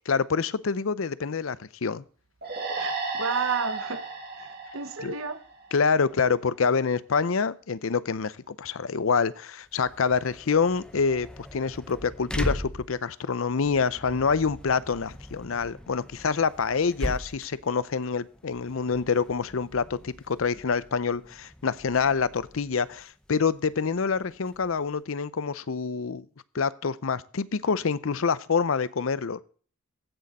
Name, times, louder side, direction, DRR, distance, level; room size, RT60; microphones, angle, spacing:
voice 1, 0.1-2.0 5.0-5.1 5.7-26.2 26.5-29.4, left 5 dB, 70° left, 0.6 m, -26 dB
sound 1, 2.4-5.9, right 3 dB, 45° right, 2.6 m, -34 dB
voice 2, 2.7-4.1 4.4-5.4, right 5 dB, 70° right, 1.0 m, -32 dB
sound 2, 9.6-25.0, equal, 5° left, 0.8 m, -40 dB
15.5 x 6.6 x 4.1 m
head